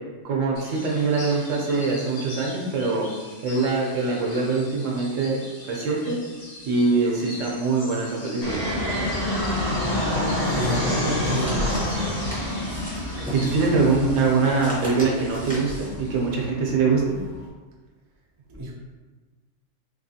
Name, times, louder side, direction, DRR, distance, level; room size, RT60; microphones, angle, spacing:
voice 1, 0.2-3.1 3.4-5.4 5.7-6.1 6.6-8.6 13.3-17.0, right 4 dB, 75° right, -2 dB, 1.1 m, -23 dB
sound 1, 0.5-16.5, left 1 dB, 45° left, 1.0 m, -43 dB
Fixed-wing aircraft airplane, 8.4-17.4, left 1 dB, 70° left, 1.4 m, -28 dB
sound 2, 10.1-15.9, equal, 5° left, 0.8 m, -40 dB
voice 2, 10.5-12.4 18.5-18.7, equal, 35° right, -3 dB, 0.3 m, -29 dB
3.5 x 3.1 x 2.7 m, 1.3 s
omnidirectional pair, 1.3 m